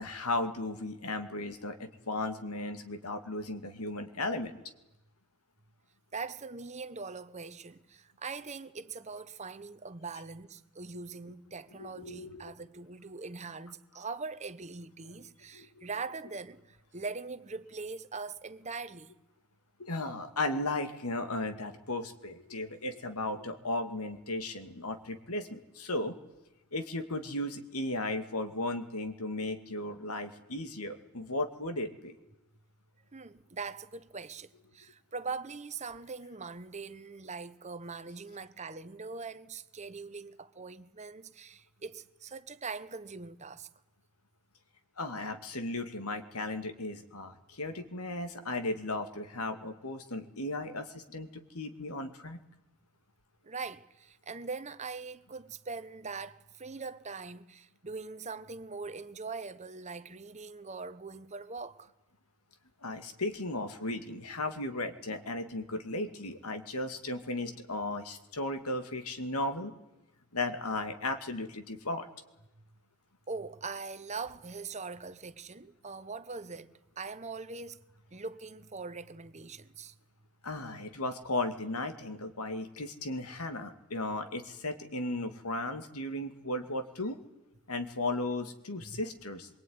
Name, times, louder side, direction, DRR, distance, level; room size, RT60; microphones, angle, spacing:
voice 1, 0.0-4.6 11.8-12.4 15.5-15.7 19.8-26.1 26.7-32.2 45.0-52.4 62.8-69.7 70.3-72.1 80.4-87.2 87.7-89.5, left 2 dB, 90° left, 2.4 m, -35 dB
voice 2, 6.1-19.1 33.1-43.7 53.4-61.9 73.3-77.8 78.1-79.9 88.9-89.0, right 4 dB, 30° right, 1.0 m, -42 dB
25.0 x 23.5 x 9.7 m
head